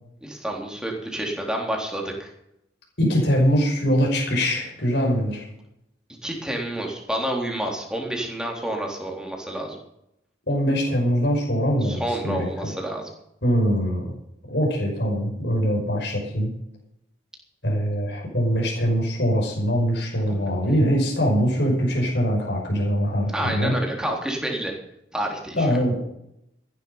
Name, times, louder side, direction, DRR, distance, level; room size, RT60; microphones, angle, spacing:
voice 1, 0.2-2.3 6.2-9.8 11.8-13.1 20.3-20.5 23.3-24.8 25.1-25.8, right 1 dB, 5° right, 0 dB, 3.6 m, -29 dB
voice 2, 3.0-5.5 10.5-12.7 13.4-14.1 14.5-16.5 17.6-23.8 25.5-26.0, equal, 60° left, -1 dB, 5.7 m, -22 dB
15.0 x 11.5 x 5.7 m, 0.78 s
head